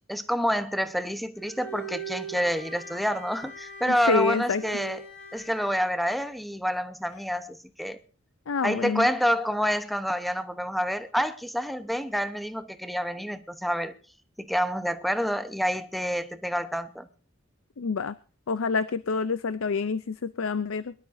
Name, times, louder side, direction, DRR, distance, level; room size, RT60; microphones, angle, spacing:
voice 1, 0.1-5.1 5.3-8.0 8.6-13.9 14.4-17.1, equal, ahead, 10 dB, 1.0 m, -28 dB
Bowed string instrument, 1.4-5.9, right 4 dB, 70° left, 5.1 m, -41 dB
voice 2, 3.9-4.6 8.5-9.1 17.8-18.1 18.5-20.9, left 5 dB, 90° left, 15 dB, 0.5 m, -27 dB
23.5 x 12.0 x 2.7 m, 0.37 s
head